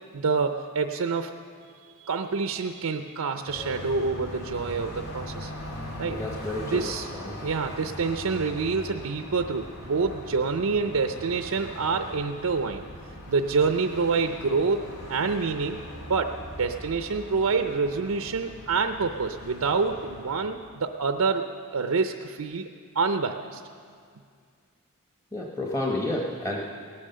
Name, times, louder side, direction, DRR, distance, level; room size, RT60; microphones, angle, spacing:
voice 1, 0.1-1.3 2.0-5.5 6.0-6.2 6.6-7.1 7.4-12.8 13.3-21.5 21.7-22.7 23.0-23.6, right 4 dB, 80° right, 6 dB, 0.6 m, -27 dB
Car passing by, 3.5-20.7, left 1 dB, 80° left, 2.7 m, -41 dB
voice 2, 6.1-6.8 7.1-7.4 25.3-26.6, left 1 dB, 15° left, -1 dB, 1.0 m, -30 dB
18.0 x 9.9 x 6.7 m, 2.2 s
head